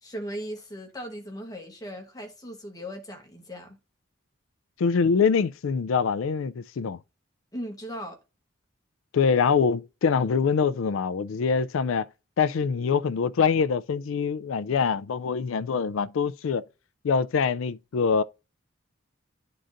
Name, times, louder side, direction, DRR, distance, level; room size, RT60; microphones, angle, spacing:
voice 1, 0.0-3.8 7.5-8.2, equal, 20° left, 1.1 m, -38 dB
voice 2, 4.8-7.0 9.1-12.1 12.4-16.6 17.0-18.2, left 6 dB, 80° left, 0.4 m, -24 dB
11.0 x 3.8 x 2.5 m
head